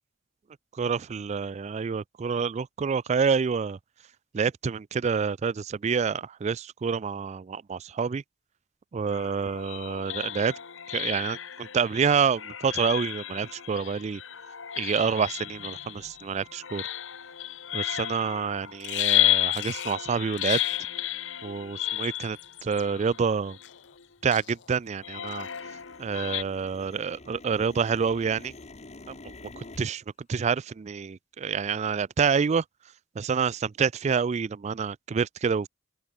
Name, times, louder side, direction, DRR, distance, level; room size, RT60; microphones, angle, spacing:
voice 1, 0.8-3.8 4.3-8.2 8.9-10.5 10.9-14.2 14.8-16.8 17.7-20.6 21.4-23.6 24.2-25.5 26.0-28.5 29.6-30.0 30.3-32.6 33.2-35.7, right 6 dB, 35° right, 0.3 m, -27 dB
sound 1, 9.1-24.0 25.0-26.4, left 13 dB, 80° left, 1.2 m, -32 dB
Bird vocalization bird call bird song, 17.8-18.1 18.8-19.2 19.5-20.0 20.3-20.8 21.9-22.8 23.6-24.1 24.3-24.8 25.3-25.6, left 14 dB, 60° left, 0.6 m, -42 dB
sound 2, 19.8-19.9 20.4-20.7 21.2-21.3 21.5-22.1 22.4-24.7 25.0-29.8, left 2 dB, 35° left, 1.2 m, -49 dB
open air
head